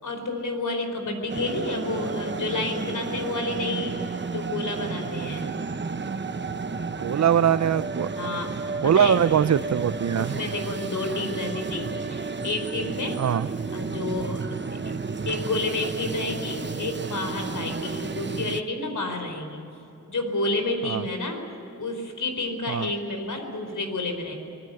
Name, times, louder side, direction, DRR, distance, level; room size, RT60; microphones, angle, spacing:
voice 1, 0.0-3.9 4.3-5.5 8.2-9.2 10.2-13.2 13.7-14.6 15.2-19.6 20.1-21.4 21.8-24.3, left 2 dB, 85° left, 5 dB, 4.6 m, -30 dB
sound 1, 1.3-18.6, right 4 dB, 35° right, 1.0 m, -32 dB
voice 2, 5.2-5.6 7.0-8.1 8.8-10.4 13.2-13.5 20.8-21.0 22.7-22.9, right 8 dB, 60° right, 17 dB, 0.6 m, -22 dB
25.0 x 20.5 x 8.0 m, 2.9 s
wide cardioid pair, 85°, 30 cm